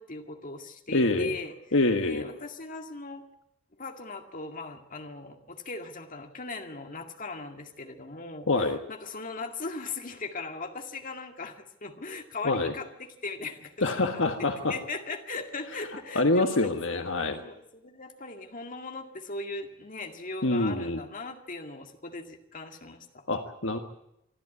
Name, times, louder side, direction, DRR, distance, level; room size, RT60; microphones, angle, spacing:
voice 1, 0.0-1.5 2.0-3.2 3.8-16.9 17.4-23.2, left 3 dB, 40° left, 5 dB, 2.2 m, -39 dB
voice 2, 0.9-1.3 1.7-2.3 8.5-8.8 12.4-12.7 13.8-14.7 16.1-17.4 20.4-21.0 23.3-23.8, left 2 dB, 65° left, 6 dB, 1.5 m, -25 dB
26.0 x 12.5 x 9.6 m, 0.80 s
head